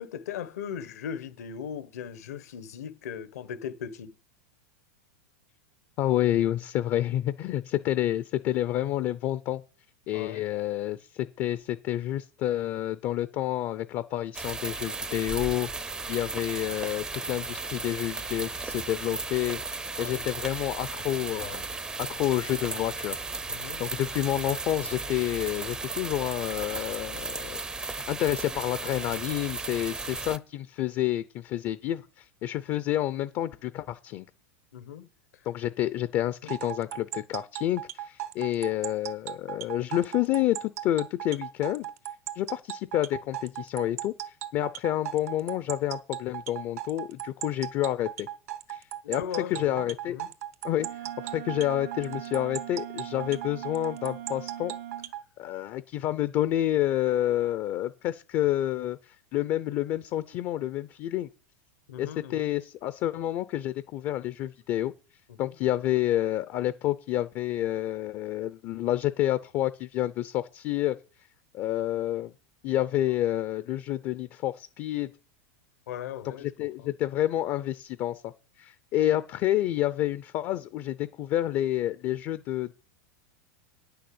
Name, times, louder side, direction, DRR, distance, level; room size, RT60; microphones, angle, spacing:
voice 1, 0.0-4.1 10.1-10.4 20.0-20.2 23.5-23.8 34.7-35.1 36.4-36.5 49.0-50.3 61.9-62.5 65.3-65.5 75.9-76.9, left 8 dB, 85° left, 1.4 m, -38 dB
voice 2, 6.0-9.6 10.1-21.6 22.0-23.2 23.8-34.3 35.4-41.9 42.3-48.3 48.7-50.2 50.6-54.7 55.4-61.3 62.0-64.9 65.4-71.0 71.5-72.3 72.6-75.1 76.2-78.3 78.6-82.8, left 13 dB, 40° left, 0.5 m, -29 dB
sound 1, 14.3-30.4, right 3 dB, 10° right, 0.5 m, -35 dB
sound 2, 36.5-55.2, right 12 dB, 80° right, 1.2 m, -37 dB
Wind instrument woodwind instrument, 50.7-55.1, right 12 dB, 65° right, 1.2 m, -41 dB
9.3 x 6.6 x 7.9 m
supercardioid pair, 140°, 8 cm